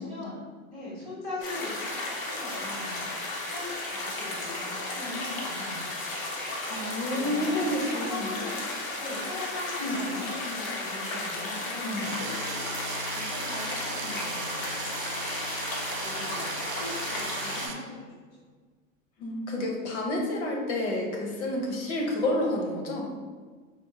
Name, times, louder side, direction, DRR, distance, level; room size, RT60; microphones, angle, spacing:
voice 1, 0.0-6.0 6.9-7.7 8.1-8.6 9.0-12.6 13.1-14.8 15.9-18.0, left 2 dB, 10° left, -9 dB, 0.4 m, -40 dB
sound 1, 1.4-17.7, left 2 dB, 85° left, 1.0 m, -34 dB
voice 2, 6.7-8.3 9.8-10.0 11.8-12.1 12.5-12.6 19.2-23.1, left 1 dB, 60° left, 0 dB, 0.9 m, -30 dB
sound 2, 12.0-17.7, right 5 dB, 75° right, 0.6 m, -37 dB
4.4 x 2.5 x 2.8 m, 1.5 s
supercardioid pair, 170°, 40 cm